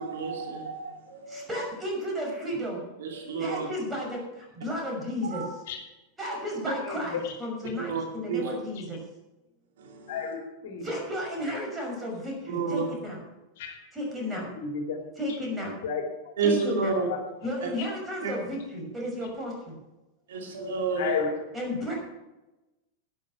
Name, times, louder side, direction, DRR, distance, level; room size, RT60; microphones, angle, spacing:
voice 1, 0.0-1.6 3.0-3.7 5.2-5.5 7.8-8.5 9.8-10.1 12.5-13.0 16.4-17.1 17.6-17.7 18.2-18.3 20.3-21.1, right 4 dB, 60° right, 1 dB, 2.6 m, -30 dB
voice 2, 1.3-2.8 3.4-5.4 6.2-9.0 10.8-13.2 13.9-14.5 15.2-15.7 16.4-16.9 17.4-19.8 21.5-21.9, equal, 15° right, -1 dB, 5.8 m, -33 dB
voice 3, 6.8-7.4 7.6-7.7 8.5-8.6 10.1-10.9 13.6-13.8 14.6-15.0 15.3-15.4 15.8-16.3 17.1-17.2 21.0-21.4, left 5 dB, 55° left, 4 dB, 2.6 m, -32 dB
11.5 x 9.9 x 5.8 m, 1.0 s
figure-of-eight pair, 90°, 0 cm